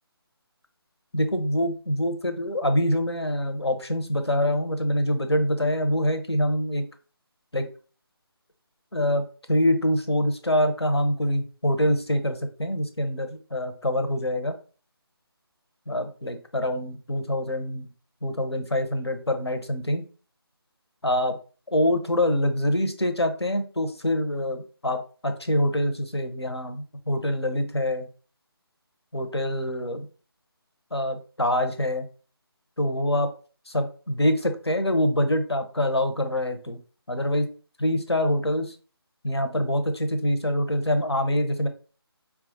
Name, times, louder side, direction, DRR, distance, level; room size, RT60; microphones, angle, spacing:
voice 1, 1.1-6.8 7.5-7.7 8.9-14.6 15.9-17.9 18.2-20.1 21.0-21.4 21.7-28.1 29.1-30.1 30.9-32.1 32.8-33.3 33.7-36.8 37.1-37.5 37.8-38.8 39.2-41.7, left 1 dB, 90° left, 7 dB, 0.7 m, -25 dB
4.4 x 2.3 x 2.6 m, 0.38 s
figure-of-eight pair, 155°, 13 cm